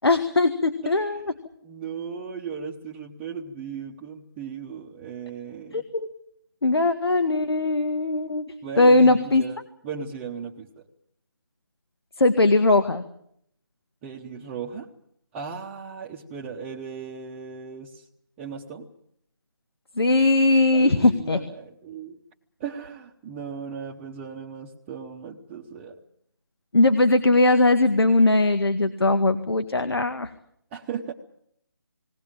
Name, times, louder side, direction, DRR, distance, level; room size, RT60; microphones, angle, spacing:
voice 1, 0.0-1.2 5.7-6.1 6.6-8.5 8.8-9.4 12.2-13.0 20.0-21.4 26.7-30.3, left 2 dB, 85° left, 9 dB, 1.9 m, -20 dB
voice 2, 0.8-1.2 1.6-5.8 8.6-9.6 9.8-10.9 14.0-14.9 15.3-18.0 18.4-18.9 20.7-22.2 22.6-26.0 30.7-31.1, right 6 dB, 10° right, -4 dB, 0.9 m, -36 dB
20.5 x 18.5 x 8.9 m, 0.71 s
figure-of-eight pair, 165°, 13 cm